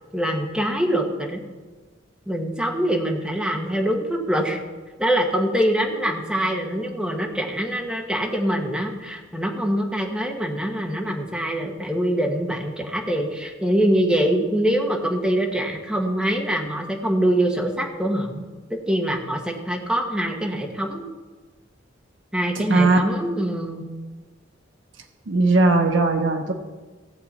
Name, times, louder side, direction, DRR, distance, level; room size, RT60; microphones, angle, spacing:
voice 1, 0.1-1.4 2.3-4.6 5.0-21.0 22.3-23.9, equal, 5° right, 1 dB, 1.3 m, -24 dB
voice 2, 25.3-26.5, right 2 dB, 75° right, 4 dB, 0.9 m, -18 dB
17.0 x 7.5 x 4.3 m, 1.3 s
head